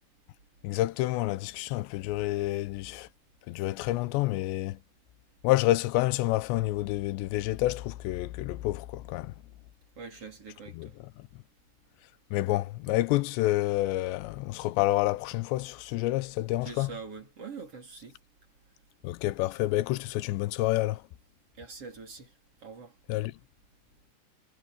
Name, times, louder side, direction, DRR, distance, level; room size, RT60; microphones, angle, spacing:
voice 1, 0.6-3.1 3.5-4.8 5.4-9.3 10.7-10.9 11.2-11.3 12.3-16.9 19.0-21.0 23.1-23.3, left 17 dB, 90° left, 3.0 m, -28 dB
voice 2, 10.0-11.0 16.6-18.2 21.6-22.3 22.6-22.9, right 5 dB, 35° right, 4.5 m, -44 dB
omnidirectional pair, 5.0 m